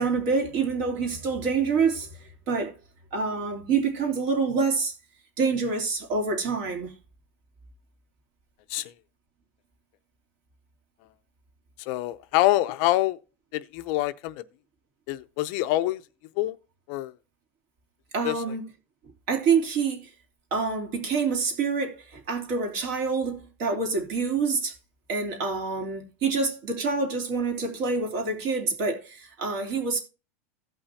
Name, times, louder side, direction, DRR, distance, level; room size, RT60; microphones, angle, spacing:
voice 1, 0.0-2.7 3.1-4.9 5.4-6.9 18.1-18.6 19.3-20.1 20.5-24.7 25.1-30.0, right 4 dB, 50° right, 3.0 m, -27 dB
voice 2, 11.8-13.2 13.5-14.4 15.1-16.0 16.4-16.6 16.9-17.1 18.2-18.4, left 16 dB, 50° left, 0.6 m, -25 dB
16.5 x 5.7 x 2.7 m
supercardioid pair, 155°, 8 cm